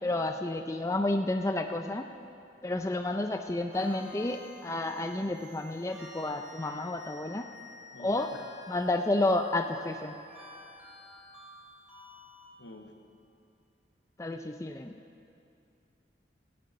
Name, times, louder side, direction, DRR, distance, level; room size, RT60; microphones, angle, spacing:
voice 1, 0.0-2.1 2.6-7.5 8.0-8.3 8.7-10.2 14.2-14.9, left 2 dB, 15° left, 5 dB, 0.4 m, -30 dB
sound 1, 3.7-12.4, left 2 dB, 5° right, 2.9 m, -51 dB
voice 2, 7.9-8.4 12.6-12.9, left 2 dB, 80° left, 4 dB, 1.1 m, -49 dB
15.0 x 6.9 x 8.8 m, 2.6 s
head